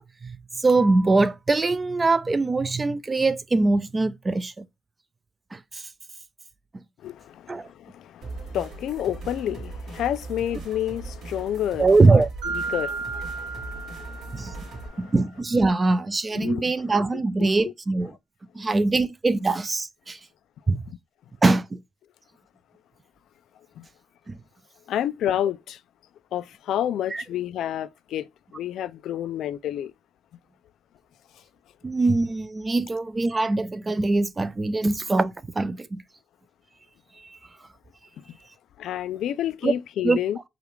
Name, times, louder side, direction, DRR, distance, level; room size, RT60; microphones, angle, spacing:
voice 1, 0.0-4.7 5.5-5.8 7.5-7.7 11.8-12.3 14.3-14.5 15.0-18.1 18.6-20.2 20.7-20.8 21.4-21.8 24.3-24.4 27.1-27.2 31.8-36.0 39.6-39.7 40.0-40.2, right 3 dB, 25° right, 0.4 m, -22 dB
voice 2, 7.0-15.1 16.3-16.7 17.1-17.7 20.9-21.0 23.8-23.9 24.9-25.8 26.3-28.3 28.5-29.9 38.3-38.4 38.8-40.4, left 11 dB, 75° left, 0.3 m, -30 dB
sound 1, 8.2-14.9, right 3 dB, 60° right, 2.4 m, -39 dB
Mallet percussion, 12.4-15.0, right 4 dB, 90° right, 1.5 m, -34 dB
4.9 x 2.4 x 3.1 m
cardioid pair, 115°, 0 cm